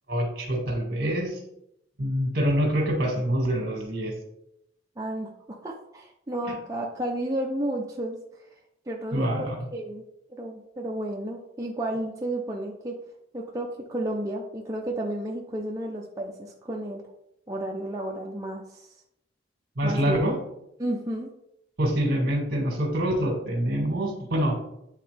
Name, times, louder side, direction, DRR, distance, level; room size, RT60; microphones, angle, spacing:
voice 1, 0.1-1.4 2.0-4.1 9.1-9.6 19.8-20.3 21.8-24.5, equal, 55° right, 1 dB, 1.8 m, -25 dB
voice 2, 5.0-5.3 5.6-8.2 8.9-10.0 10.4-13.0 13.3-17.0 17.5-18.9 19.8-20.2 20.8-21.3, right 1 dB, 20° right, -1 dB, 0.5 m, -32 dB
9.0 x 3.8 x 3.3 m, 0.80 s
head